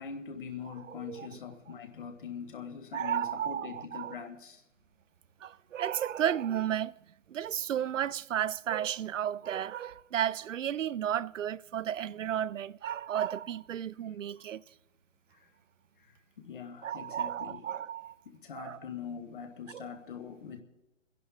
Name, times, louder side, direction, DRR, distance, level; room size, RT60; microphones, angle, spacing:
voice 1, 0.0-4.6 15.3-15.5 16.0-17.6 18.2-20.6, left 7 dB, 45° left, 1.3 m, -43 dB
voice 2, 1.0-1.4 2.9-4.2 5.4-6.9 7.3-14.6 16.8-18.1 18.6-18.8 19.7-19.9, right 10 dB, 85° right, 0.6 m, -33 dB
29.0 x 11.0 x 3.5 m
hypercardioid pair, 165°, 37 cm